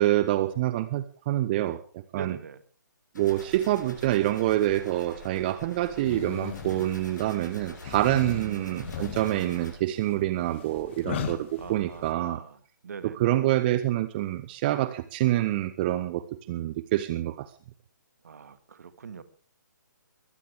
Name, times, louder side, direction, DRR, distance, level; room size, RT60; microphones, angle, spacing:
voice 1, 0.0-1.8 2.1-2.4 3.2-12.4 13.0-17.5, right 14 dB, 30° right, 13 dB, 0.9 m, -26 dB
voice 2, 2.1-2.6 8.3-9.0 11.6-12.6 12.8-13.4 18.2-19.2, right 6 dB, 55° right, 12 dB, 1.9 m, -42 dB
sound 1, 3.1-9.8, left 1 dB, 70° left, 7.7 m, -46 dB
sound 2, 6.0-7.3 7.7-12.1, left 9 dB, 35° left, 2.1 m, -38 dB
22.0 x 16.0 x 3.5 m, 0.39 s
figure-of-eight pair, 130°, 10 cm